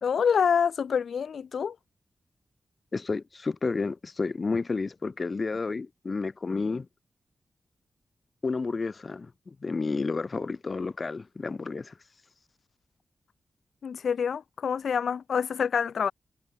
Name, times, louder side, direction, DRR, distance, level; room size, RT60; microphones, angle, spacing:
voice 1, 0.0-1.8 13.8-16.1, left 7 dB, 80° left, 0.7 m, -26 dB
voice 2, 2.9-6.9 8.4-11.9, left 4 dB, 45° left, 1.0 m, -31 dB
cardioid pair, 65°, 0 cm